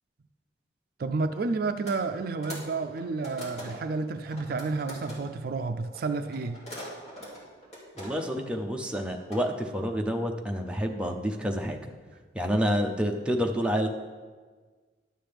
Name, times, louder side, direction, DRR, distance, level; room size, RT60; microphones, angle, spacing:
voice 1, 1.0-6.6, right 3 dB, 55° right, 9 dB, 0.4 m, -30 dB
sound 1, 1.9-2.0 2.2-4.0 4.3-5.2 5.9-8.4 8.7-9.4, equal, 35° left, 2.7 m, -42 dB
voice 2, 8.0-11.8 12.3-13.9, equal, 5° right, 1 dB, 0.6 m, -28 dB
12.0 x 7.5 x 3.4 m, 1.4 s
head